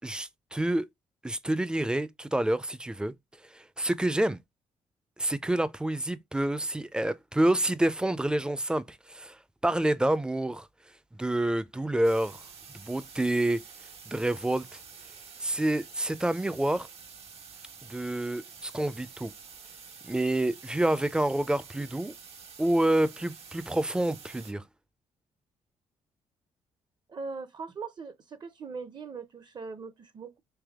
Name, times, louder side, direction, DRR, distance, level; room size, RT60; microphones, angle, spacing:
voice 1, 0.0-0.9 1.2-3.1 3.5-4.4 5.2-10.7 11.1-12.4 12.7-13.6 14.1-14.8 15.4-16.9 17.8-19.3 20.0-22.1 22.6-24.6, right 1 dB, 5° right, 0.4 m, -28 dB
sound 1, 12.0-24.5, right 6 dB, 55° right, 1.4 m, -49 dB
voice 2, 27.1-30.4, right 4 dB, 40° right, 0.7 m, -40 dB
3.5 x 3.4 x 3.5 m
cardioid pair, 95°, 12 cm